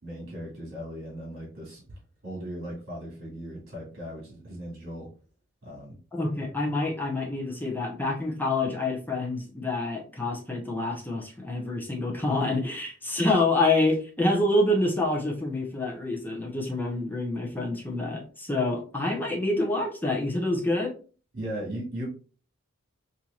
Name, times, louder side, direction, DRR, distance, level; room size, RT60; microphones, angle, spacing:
voice 1, 0.0-1.8 2.2-5.1 5.6-6.0 21.3-22.1, equal, 50° right, -3 dB, 1.9 m, -37 dB
voice 2, 6.1-20.9, left 2 dB, 10° left, -1 dB, 0.7 m, -27 dB
4.4 x 2.7 x 2.4 m, 0.38 s
head